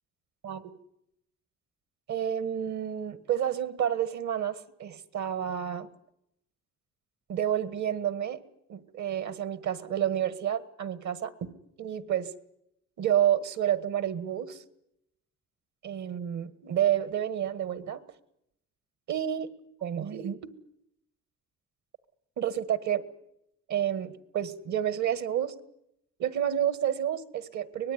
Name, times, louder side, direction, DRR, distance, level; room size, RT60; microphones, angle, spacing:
voice 1, 0.4-0.7 2.1-5.9 7.3-8.4 8.7-11.5 11.8-12.3 13.0-14.6 15.8-18.0 19.1-19.5 19.8-20.5 22.4-23.0 23.7-25.5 26.2-27.9, right 10 dB, 70° right, 15 dB, 1.9 m, -29 dB
24.5 x 19.5 x 9.6 m, 0.79 s
cardioid pair, 90°, 30 cm